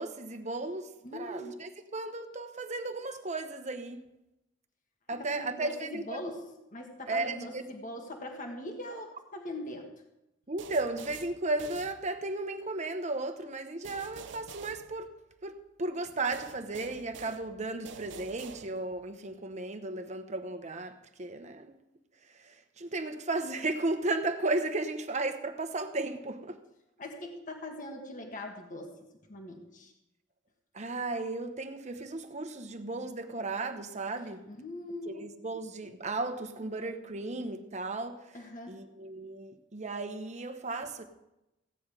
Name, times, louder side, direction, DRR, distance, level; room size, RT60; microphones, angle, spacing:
voice 1, 0.0-4.0 5.1-6.0 7.1-7.6 10.5-15.1 15.4-21.8 22.4-26.6 30.7-34.4 35.1-38.2 38.7-41.0, right 2 dB, 40° right, 1.0 m, -35 dB
voice 2, 1.0-1.7 5.1-6.4 6.7-9.9 27.0-28.9 29.3-29.9 34.5-35.4 38.3-38.7, left 1 dB, 45° left, 1.6 m, -41 dB
sound 1, 10.6-12.5 13.8-15.6 16.3-19.1, right 6 dB, 65° right, 0.6 m, -48 dB
16.0 x 9.6 x 4.9 m
head